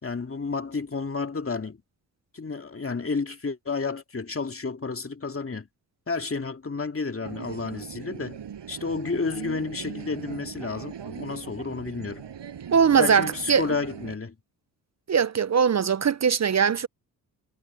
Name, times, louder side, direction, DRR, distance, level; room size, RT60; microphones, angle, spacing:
voice 1, 0.0-1.8 2.3-5.7 6.1-8.4 8.7-12.2 13.0-14.4, left 4 dB, 30° left, 2.4 m, -31 dB
sound 1, 7.2-14.2, right 8 dB, 65° right, 6.9 m, -40 dB
voice 2, 12.7-13.6 15.1-16.9, right 7 dB, 35° right, 0.7 m, -21 dB
supercardioid pair, 50°, 46 cm